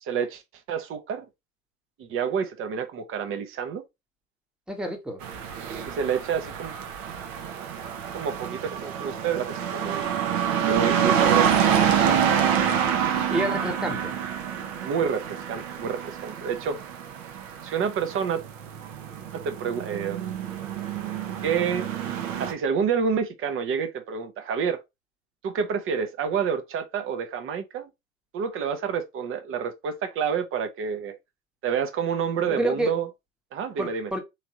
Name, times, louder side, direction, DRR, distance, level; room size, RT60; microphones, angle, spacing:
voice 1, 0.0-0.4 0.7-1.2 2.0-3.8 5.9-6.7 8.1-10.0 10.6-11.6 14.8-16.8 17.6-18.4 19.3-20.3 21.4-21.9 22.4-24.8 25.4-27.9 28.3-31.2 31.6-33.1 33.5-34.1, right 7 dB, 30° right, 0.7 m, -28 dB
voice 2, 4.7-5.2 13.3-14.1 32.5-32.9 33.8-34.2, right 1 dB, ahead, 1.0 m, -28 dB
sound 1, 5.2-22.5, right 8 dB, 65° right, 1.0 m, -27 dB
3.4 x 3.1 x 2.8 m
hypercardioid pair, 85°, 42 cm